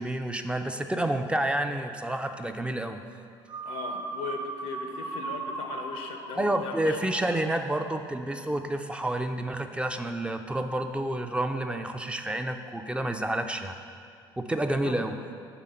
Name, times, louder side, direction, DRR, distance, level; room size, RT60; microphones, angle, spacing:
voice 1, 0.0-3.0 6.4-13.7 14.4-15.1, right 1 dB, 10° right, 6 dB, 0.3 m, -29 dB
sound 1, 3.5-8.0, right 3 dB, 60° right, 0.8 m, -38 dB
voice 2, 3.6-7.0 11.9-12.0 14.8-15.0, left 5 dB, 80° left, 4 dB, 0.6 m, -39 dB
5.0 x 3.4 x 5.6 m, 2.3 s
hypercardioid pair, 65°, 11 cm